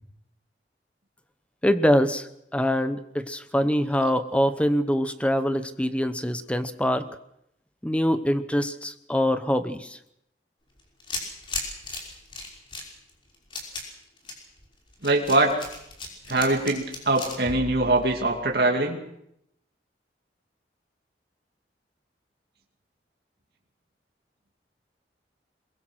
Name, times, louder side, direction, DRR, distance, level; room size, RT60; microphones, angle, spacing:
voice 1, 1.6-7.1 7.8-10.0, equal, 5° left, 10 dB, 1.0 m, -24 dB
sound 1, 10.8-18.5, left 2 dB, 30° left, 5.4 m, -36 dB
voice 2, 15.0-15.6 16.3-19.0, right 2 dB, 60° right, 1 dB, 2.5 m, -23 dB
22.5 x 22.0 x 6.3 m, 0.77 s
head